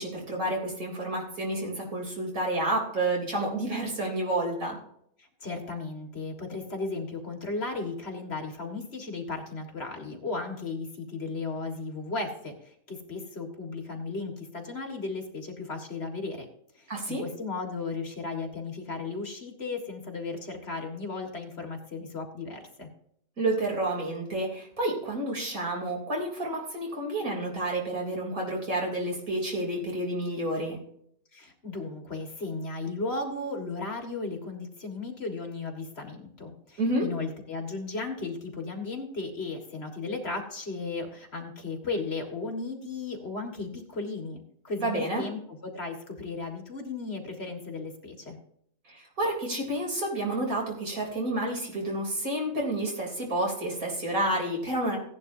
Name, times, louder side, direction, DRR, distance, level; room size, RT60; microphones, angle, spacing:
voice 1, 0.0-4.8 16.9-17.2 23.4-30.8 36.8-37.1 44.8-45.3 48.9-55.0, right 1 dB, 80° right, -1 dB, 3.8 m, -30 dB
voice 2, 5.2-16.5 16.8-22.9 31.3-48.4, left 3 dB, 50° left, 3 dB, 2.0 m, -35 dB
16.5 x 10.5 x 2.7 m, 0.70 s
omnidirectional pair, 1.4 m